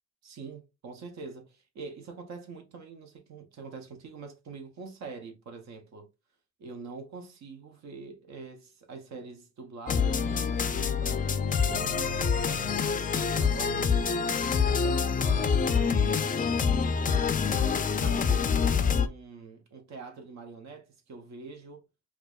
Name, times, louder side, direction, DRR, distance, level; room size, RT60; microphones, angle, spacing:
voice 1, 0.2-6.1 6.6-14.0 14.6-17.0 17.4-21.8, right 4 dB, 65° right, 0.9 m, -45 dB
sound 1, 9.9-19.1, left 6 dB, 30° left, 0.4 m, -26 dB
4.6 x 2.4 x 2.4 m
cardioid pair, 90°, 30 cm